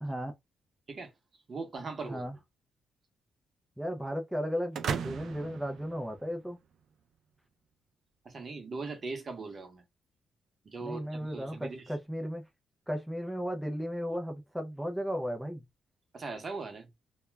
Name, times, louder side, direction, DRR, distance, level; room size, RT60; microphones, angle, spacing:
voice 1, 0.0-0.3 2.0-2.4 3.8-6.6 10.8-12.5 12.9-15.6, equal, ahead, 0.5 m, -35 dB
voice 2, 1.5-2.2 8.2-9.8 10.6-11.8 16.1-16.9, right 3 dB, 40° right, 0.8 m, -39 dB
sound 1, 4.7-6.7, right 7 dB, 70° right, 0.4 m, -37 dB
2.3 x 2.1 x 3.2 m
cardioid pair, 115°, 0 cm